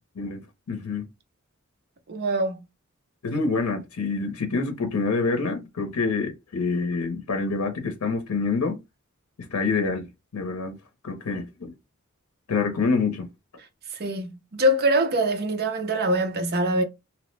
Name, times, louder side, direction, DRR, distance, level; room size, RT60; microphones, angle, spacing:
voice 1, 0.2-1.1 3.2-8.8 9.4-10.8 11.0-11.7 12.5-13.3, left 4 dB, 85° left, 0.6 m, -27 dB
voice 2, 2.1-2.6 14.0-16.8, right 1 dB, 45° right, 0.6 m, -23 dB
2.9 x 2.0 x 3.1 m
head